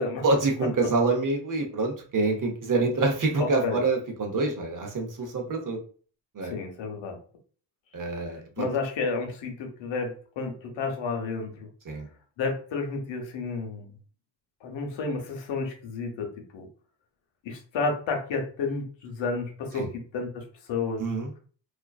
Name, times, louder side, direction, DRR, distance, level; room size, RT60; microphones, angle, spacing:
voice 1, 0.2-5.8 6.3-6.5 7.9-8.7 11.8-12.1 19.7-19.9 21.0-21.3, right 3 dB, 45° right, 3 dB, 0.8 m, -26 dB
voice 2, 6.5-7.2 8.6-11.7 12.4-13.9 14.6-16.7 17.4-19.9 20.1-21.0, left 4 dB, 85° left, 2 dB, 0.8 m, -31 dB
2.5 x 2.2 x 2.3 m, 0.42 s
cardioid pair, 70°, 44 cm